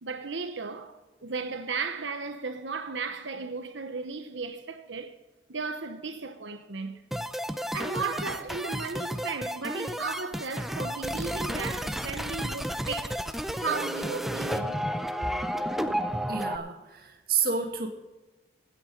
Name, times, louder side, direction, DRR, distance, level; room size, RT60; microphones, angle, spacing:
voice 1, 0.0-5.2 5.5-7.0 7.6-13.2 13.6-14.8, right 4 dB, 85° right, 1.1 m, -35 dB
sound 1, 7.1-16.6, equal, ahead, 0.5 m, -32 dB
voice 2, 16.3-17.9, right 6 dB, 55° right, 2.1 m, -29 dB
16.5 x 9.1 x 5.3 m
head